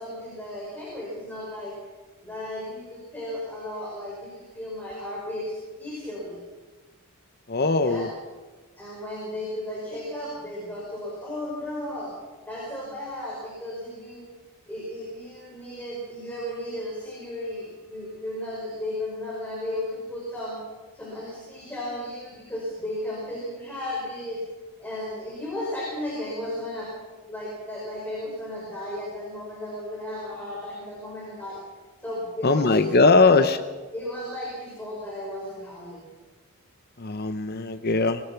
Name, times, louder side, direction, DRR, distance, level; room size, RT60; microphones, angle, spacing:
voice 1, 0.0-1.7 2.2-6.4 7.7-8.1 8.8-12.1 12.4-14.3 14.7-20.6 20.9-24.4 24.8-26.9 27.3-31.6 32.0-33.4 33.9-36.1, left 1 dB, 10° left, -4 dB, 5.2 m, -34 dB
voice 2, 7.5-8.1 32.4-33.6 37.0-38.2, left 3 dB, 45° left, 9 dB, 0.7 m, -20 dB
24.5 x 19.0 x 5.9 m, 1.3 s
head